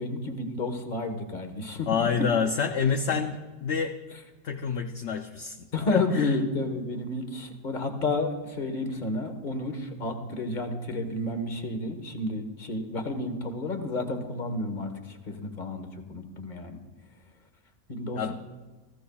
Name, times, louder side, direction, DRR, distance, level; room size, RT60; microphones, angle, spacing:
voice 1, 0.0-1.9 5.7-16.8 17.9-18.3, left 2 dB, 40° left, 6 dB, 1.4 m, -31 dB
voice 2, 1.9-3.4 3.6-4.0 4.4-5.6 5.9-6.4 18.2-18.3, left 6 dB, 65° left, 5 dB, 0.9 m, -27 dB
21.0 x 14.5 x 2.3 m, 1.3 s
omnidirectional pair, 1.3 m